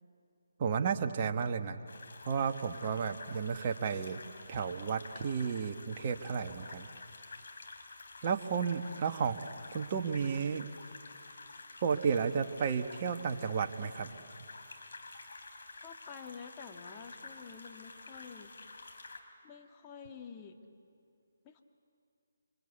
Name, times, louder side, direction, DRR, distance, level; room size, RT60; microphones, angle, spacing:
voice 1, 0.6-1.8 2.2-4.2 4.5-6.9 8.2-9.4 9.7-10.7 11.8-14.2, right 6 dB, 35° right, 6 dB, 1.5 m, -32 dB
sound 1, 1.9-19.2, left 3 dB, 60° left, 3.5 m, -50 dB
voice 2, 15.8-18.5 19.4-20.6 21.4-21.6, left 6 dB, 20° left, 2 dB, 2.0 m, -49 dB
27.5 x 25.5 x 8.3 m, 2.4 s
figure-of-eight pair, 145°, 0 cm